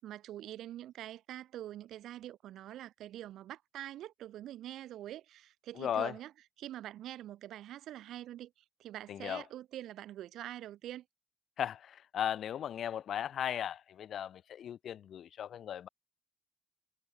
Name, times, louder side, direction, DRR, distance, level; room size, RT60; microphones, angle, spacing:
voice 1, 0.0-6.3 6.6-8.5 8.8-11.0, right 13 dB, 80° right, 2.9 m, -45 dB
voice 2, 5.8-6.1 9.1-9.4 11.6-15.9, left 9 dB, 65° left, 1.1 m, -36 dB
cardioid pair, 90°, 0 cm